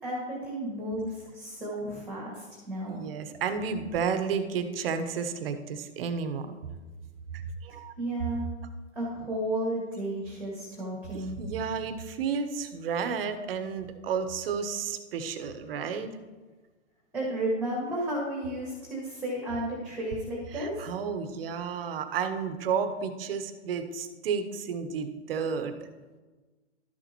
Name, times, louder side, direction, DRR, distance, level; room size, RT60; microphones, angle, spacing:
voice 1, 0.0-3.1 8.0-8.4 8.9-11.4 17.1-20.8, right 1 dB, 5° right, -4 dB, 1.8 m, -33 dB
voice 2, 2.9-6.5 7.3-7.9 11.1-16.1 20.5-25.7, right 6 dB, 55° right, 9 dB, 1.0 m, -32 dB
12.5 x 7.0 x 3.0 m, 1.3 s
hypercardioid pair, 140°, 36 cm